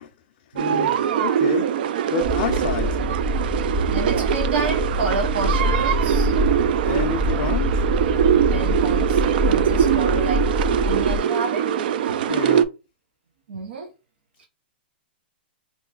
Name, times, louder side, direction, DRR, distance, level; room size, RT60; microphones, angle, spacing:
voice 1, 0.5-1.7 2.1-3.0 6.8-7.9 12.2-12.7, left 9 dB, 50° left, 0.4 m, -29 dB
sound 1, 0.6-12.6, right 9 dB, 60° right, 0.3 m, -22 dB
sound 2, 2.2-11.2, left 1 dB, 30° right, 0.9 m, -25 dB
voice 2, 3.6-6.4 8.4-10.5 10.9-11.7 13.5-13.9 14.4-14.5, right 3 dB, 90° right, 0.8 m, -29 dB
3.0 x 2.5 x 3.8 m
hypercardioid pair, 155°, 6 cm